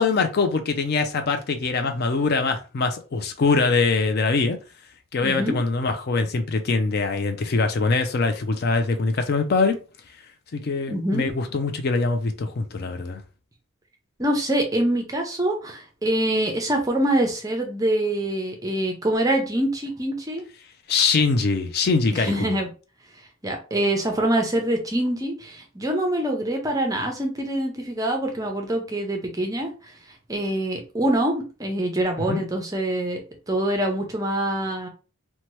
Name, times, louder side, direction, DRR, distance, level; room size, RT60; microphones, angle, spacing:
voice 1, 0.0-4.6 5.1-9.8 10.5-13.2 20.9-22.6 32.3-32.4, left 4 dB, 45° left, 0.4 m, -23 dB
voice 2, 5.2-5.6 10.9-11.2 14.2-20.4 22.1-22.7 23.4-29.7 30.3-33.2 33.5-34.9, right 1 dB, 15° right, 0.5 m, -25 dB
2.8 x 2.2 x 3.1 m
head